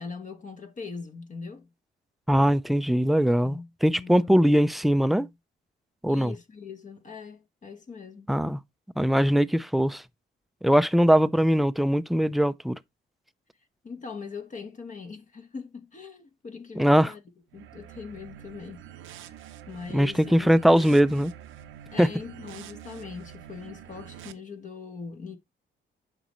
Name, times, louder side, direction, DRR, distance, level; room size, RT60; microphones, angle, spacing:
voice 1, 0.0-1.7 3.4-4.4 4.8-5.3 6.1-8.3 13.8-17.2 17.5-18.8 19.1-19.3 19.7-20.5 21.9-25.4, left 5 dB, 40° left, 1.3 m, -41 dB
voice 2, 2.3-5.3 6.0-6.3 8.3-8.6 9.0-10.0 10.6-12.8 16.8-17.1 19.9-21.3 22.0-22.1, equal, ahead, 0.5 m, -21 dB
sound 1, 17.5-24.3, right 11 dB, 80° right, 0.7 m, -46 dB
7.9 x 5.4 x 3.1 m
cardioid pair, 90°, 20 cm